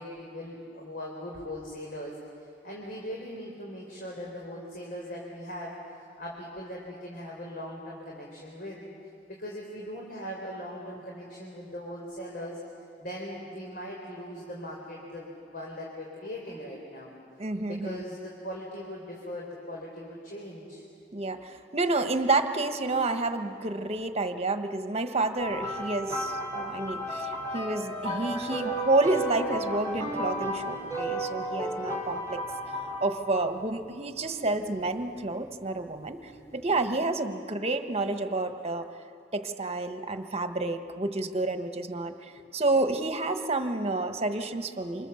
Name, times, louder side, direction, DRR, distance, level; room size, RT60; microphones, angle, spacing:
voice 1, 0.0-5.8 6.2-8.8 9.3-12.6 13.0-17.1 17.7-20.8 42.4-42.5, equal, 55° left, -2 dB, 4.0 m, -40 dB
voice 2, 17.4-18.0 21.1-32.4 33.0-38.9 39.3-45.1, right 2 dB, 35° right, 7 dB, 1.3 m, -29 dB
sound 1, 25.4-33.6 34.5-34.7 36.6-36.7, right 1 dB, 15° left, 4.6 m, -33 dB
28.0 x 26.0 x 7.1 m, 2.4 s
head